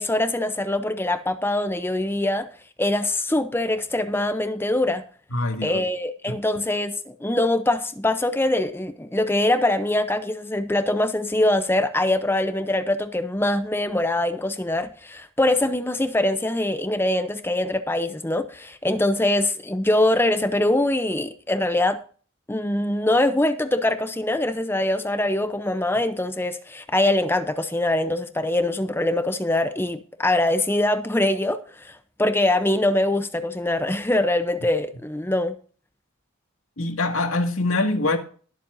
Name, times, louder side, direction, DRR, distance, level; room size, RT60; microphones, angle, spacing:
voice 1, 0.0-2.5 2.8-5.0 5.6-22.0 22.5-35.5, left 1 dB, 10° left, 0.6 m, -23 dB
voice 2, 5.3-5.9 6.3-6.4 36.8-38.2, left 2 dB, 85° left, 2.0 m, -24 dB
20.5 x 7.4 x 2.6 m
head